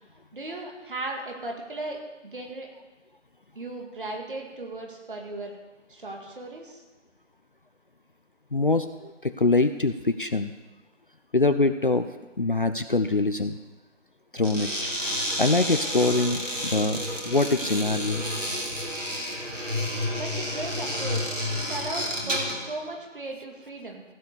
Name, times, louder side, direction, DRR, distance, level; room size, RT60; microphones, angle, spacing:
voice 1, 0.3-2.7 3.6-5.6 5.9-6.8 20.2-21.4 21.7-24.0, right 2 dB, 45° right, 1 dB, 2.1 m, -36 dB
voice 2, 8.5-10.5 11.3-12.1 12.4-13.6 14.3-14.7 15.4-18.2, left 3 dB, 45° left, 10 dB, 0.5 m, -24 dB
sound 1, 14.4-22.7, equal, 85° right, 3.1 m, -30 dB
15.5 x 5.5 x 6.9 m, 1.1 s
figure-of-eight pair, 160°, 37 cm